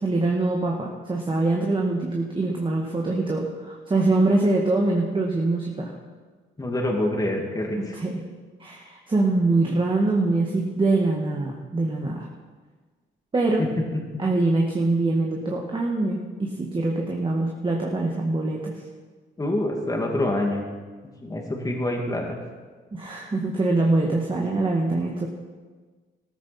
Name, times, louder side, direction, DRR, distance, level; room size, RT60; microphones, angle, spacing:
voice 1, 0.0-5.9 7.9-8.2 8.6-12.3 13.3-13.7 14.2-18.8 22.9-25.3, right 2 dB, 25° right, -1 dB, 1.7 m, -24 dB
voice 2, 6.6-8.0 19.4-20.6 21.2-22.4, left 1 dB, 20° left, 0 dB, 2.5 m, -26 dB
14.0 x 13.5 x 4.4 m, 1.4 s
cardioid pair, 90°, 20 cm